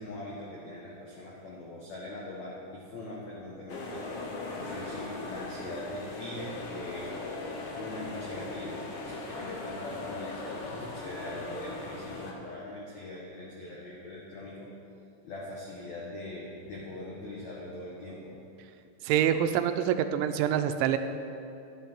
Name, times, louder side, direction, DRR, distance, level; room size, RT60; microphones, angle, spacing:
voice 1, 0.0-4.0 4.5-7.1 7.7-14.7 15.2-18.4, left 1 dB, 90° left, -4 dB, 1.5 m, -42 dB
sound 1, 3.7-12.3, left 2 dB, 70° left, 1.9 m, -39 dB
voice 2, 19.0-21.0, right 10 dB, 90° right, 9 dB, 2.9 m, -26 dB
11.5 x 11.0 x 4.4 m, 2.6 s
omnidirectional pair, 5.2 m